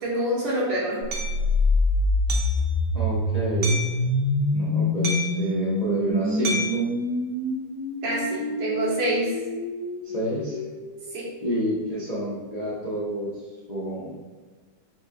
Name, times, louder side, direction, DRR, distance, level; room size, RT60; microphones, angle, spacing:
voice 1, 0.0-1.0 8.0-9.4 11.1-11.2, right 1 dB, 85° right, -6 dB, 1.9 m, -26 dB
sound 1, 1.1-11.0, left 2 dB, 60° left, 1.0 m, -26 dB
Hammer, 1.1-1.3 2.3-2.6 3.6-4.0 5.0-5.5 6.4-6.8, equal, 70° right, 0.9 m, -29 dB
voice 2, 2.9-3.8 4.5-6.9 10.0-10.6 11.4-13.4 13.7-14.2, right 1 dB, 75° left, -8 dB, 0.3 m, -29 dB
5.8 x 2.5 x 2.3 m, 1.4 s
omnidirectional pair, 1.9 m